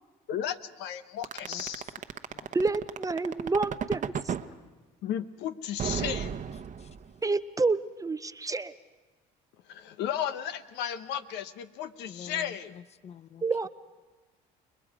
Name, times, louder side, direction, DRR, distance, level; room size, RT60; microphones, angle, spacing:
voice 1, 0.3-1.8 5.0-6.3 9.7-12.7, left 9 dB, 75° left, 1.0 m, -34 dB
sound 1, 1.2-4.5 5.8-7.2, right 8 dB, 45° right, 1.0 m, -33 dB
voice 2, 1.4-1.9 2.3-2.5 6.3-7.0 12.1-13.4, left 8 dB, 35° left, 0.7 m, -49 dB
voice 3, 2.5-4.3 7.2-8.7 13.4-13.7, right 3 dB, 20° right, 0.6 m, -29 dB
29.5 x 21.5 x 4.9 m
supercardioid pair, 80°, 18 cm